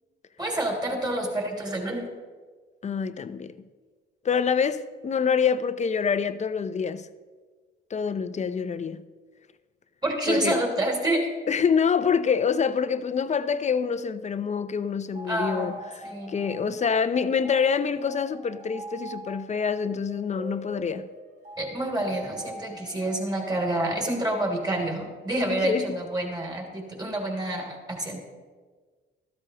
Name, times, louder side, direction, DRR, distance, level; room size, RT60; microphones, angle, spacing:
voice 1, 0.4-2.1 10.0-11.3 15.3-16.3 21.6-28.2, right 1 dB, 20° right, 3.0 m, -28 dB
voice 2, 2.8-3.5 4.2-7.1 7.9-9.0 10.3-10.6 11.5-21.1 25.5-26.0, left 6 dB, 35° left, 0.6 m, -26 dB
sound 1, 15.1-24.9, right 1 dB, 45° right, 2.6 m, -44 dB
13.0 x 12.5 x 2.9 m
cardioid pair, 90°, 20 cm